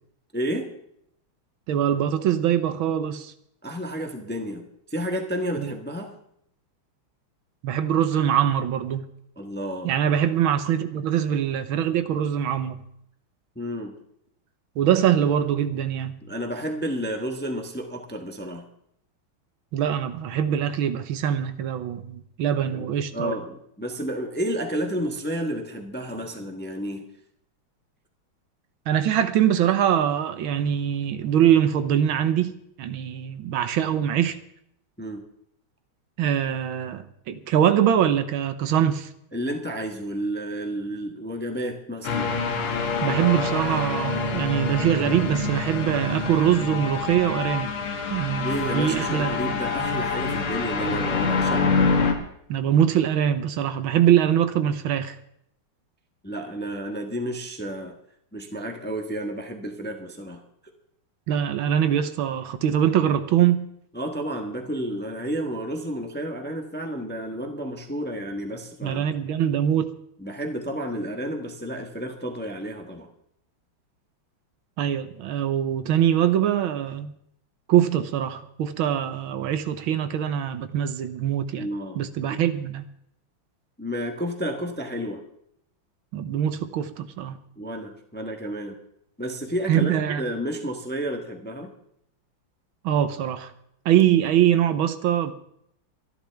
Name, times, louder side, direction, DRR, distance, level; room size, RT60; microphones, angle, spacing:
voice 1, 0.3-0.7 3.6-6.1 9.4-9.9 13.5-13.9 16.2-18.6 22.7-22.9 23.1-27.0 35.0-35.2 39.3-42.3 48.4-51.7 56.2-57.9 58.3-60.4 63.9-69.0 70.2-73.1 81.5-82.0 83.8-85.2 87.6-88.7 89.2-91.7, equal, 5° left, 4 dB, 0.9 m, -31 dB
voice 2, 1.7-3.3 5.6-5.7 7.6-9.1 9.8-12.8 14.8-16.2 19.7-23.3 28.9-32.5 32.8-34.4 36.2-39.1 43.0-47.7 48.1-49.4 52.5-55.2 61.3-63.7 68.8-69.9 74.8-77.1 77.7-81.7 82.0-82.9 86.1-87.4 89.7-90.2 92.8-93.5 93.9-95.3, right 10 dB, 75° right, 11 dB, 1.6 m, -23 dB
sound 1, 42.0-52.1, left 4 dB, 85° left, 2.3 m, -26 dB
24.5 x 11.0 x 3.5 m, 0.72 s
omnidirectional pair, 2.3 m